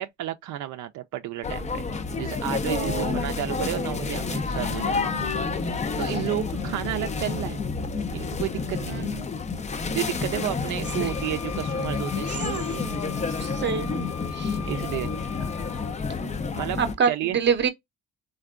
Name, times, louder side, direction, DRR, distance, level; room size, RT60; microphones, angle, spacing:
voice 1, 0.0-1.9 2.2-5.2 6.0-7.6 8.1-9.1 9.9-12.9 14.7-15.1 16.5-16.8 17.1-17.4, right 13 dB, 75° right, 0.4 m, -32 dB
sound 1, 1.4-16.9, left 4 dB, 25° left, 0.4 m, -29 dB
voice 2, 2.7-3.3 4.7-5.4 6.6-6.8 8.9-9.3 11.0-11.1 12.3-12.6 13.3-14.1 14.3-14.6 16.2-16.5 16.8-17.7, right 6 dB, 35° right, 0.7 m, -28 dB
Wind instrument woodwind instrument, 10.8-16.0, left 6 dB, 55° left, 0.7 m, -40 dB
3.4 x 2.2 x 2.3 m
cardioid pair, 90°, 30 cm